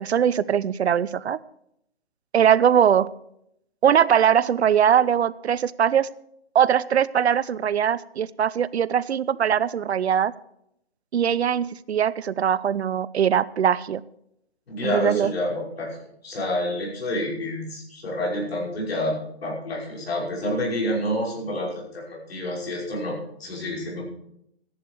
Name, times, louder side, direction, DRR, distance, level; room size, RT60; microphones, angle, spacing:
voice 1, 0.0-1.4 2.3-3.1 3.8-6.1 6.5-10.3 11.1-14.0 14.8-15.3, right 8 dB, 75° right, 18 dB, 0.7 m, -21 dB
voice 2, 14.7-16.0 16.2-24.0, left 1 dB, 65° left, -2 dB, 5.6 m, -28 dB
14.5 x 11.0 x 4.7 m, 0.76 s
hypercardioid pair, 160°, 33 cm